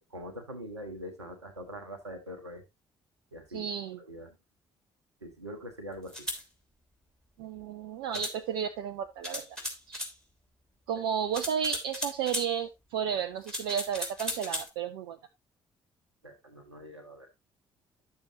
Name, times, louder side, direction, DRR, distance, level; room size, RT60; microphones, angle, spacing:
voice 1, 0.1-2.6 3.3-3.7 4.0-4.4 5.2-6.3 11.0-11.1 16.2-17.3, equal, 85° right, 5 dB, 1.1 m, -43 dB
voice 2, 3.5-4.0 7.4-9.6 9.9-10.0 10.9-15.2, right 8 dB, 70° right, 8 dB, 0.6 m, -33 dB
sound 1, 6.1-6.4 8.1-8.4 9.2-10.1 11.3-12.5 13.4-14.7, left 1 dB, 5° left, 3.0 m, -36 dB
10.5 x 6.7 x 2.8 m, 0.21 s
figure-of-eight pair, 40°, 14 cm